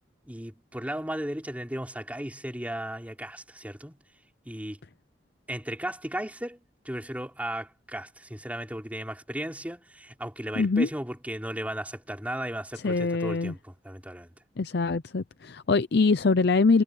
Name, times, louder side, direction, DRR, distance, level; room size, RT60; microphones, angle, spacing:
voice 1, 0.3-4.0 4.5-4.8 5.5-6.6 6.8-14.3, right 1 dB, 10° right, 4.2 m, -35 dB
voice 2, 10.6-10.9 12.8-13.5 14.6-16.8, left 4 dB, 60° left, 0.6 m, -23 dB
head